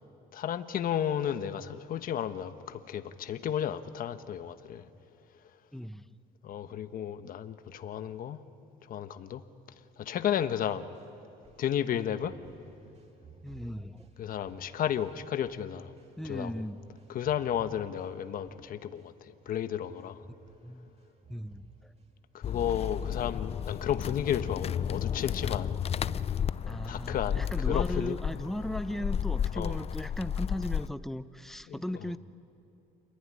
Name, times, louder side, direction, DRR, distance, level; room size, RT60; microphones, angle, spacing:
voice 1, 0.3-4.9 6.4-8.4 8.9-9.4 10.0-10.8 11.6-12.3 14.2-15.9 16.2-16.5 17.1-19.1 19.5-20.2 22.3-25.7 26.9-28.2 29.5-29.8 31.7-31.8, left 9 dB, 55° left, 1.2 m, -33 dB
voice 2, 5.7-6.0 13.4-14.1 16.2-16.8 20.6-20.9 21.3-21.9 26.7-32.2, equal, ahead, 0.8 m, -37 dB
sound 1, 10.9-23.1 23.5-23.7 24.0-26.1 26.5-27.0 27.5-27.6, right 4 dB, 40° right, 2.6 m, -58 dB
sound 2, 22.4-30.9, left 8 dB, 35° left, 0.5 m, -32 dB
28.0 x 21.5 x 9.8 m
cardioid pair, 110°, 17 cm